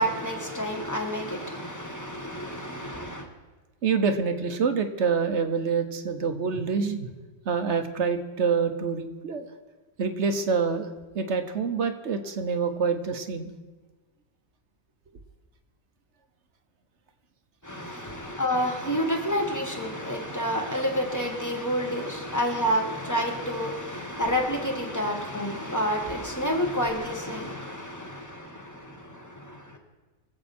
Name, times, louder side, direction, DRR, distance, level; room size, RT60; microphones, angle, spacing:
voice 1, 0.0-3.2 17.6-29.8, equal, 15° left, 1.6 m, -29 dB
voice 2, 3.8-7.1 7.5-9.4 10.0-10.9 11.1-13.5, right 5 dB, 70° right, 1.3 m, -26 dB
23.5 x 7.9 x 4.3 m
omnidirectional pair, 1.2 m